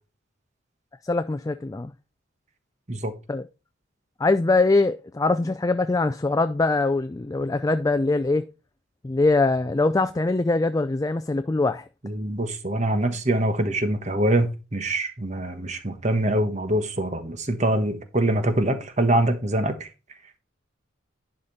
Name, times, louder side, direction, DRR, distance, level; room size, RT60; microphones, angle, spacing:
voice 1, 1.0-1.9 3.3-3.4 4.2-8.5 9.0-11.9, left 3 dB, 15° left, 0.3 m, -22 dB
voice 2, 12.0-19.9, right 1 dB, 35° right, 1.2 m, -24 dB
11.0 x 5.0 x 4.1 m
head